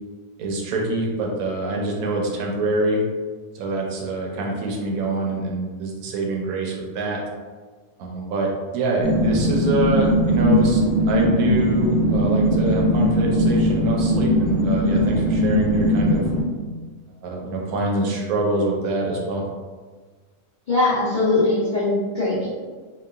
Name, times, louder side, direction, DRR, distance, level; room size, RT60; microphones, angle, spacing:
voice 1, 0.4-3.0 3.5-7.2 8.0-10.8 11.1-16.2 17.2-19.4, right 2 dB, 85° right, -1 dB, 1.1 m, -25 dB
sound 1, 9.0-16.4, equal, 10° right, 0.4 m, -19 dB
voice 2, 20.7-22.5, left 2 dB, 60° left, -10 dB, 0.5 m, -21 dB
2.9 x 2.3 x 2.3 m, 1.4 s
omnidirectional pair, 1.5 m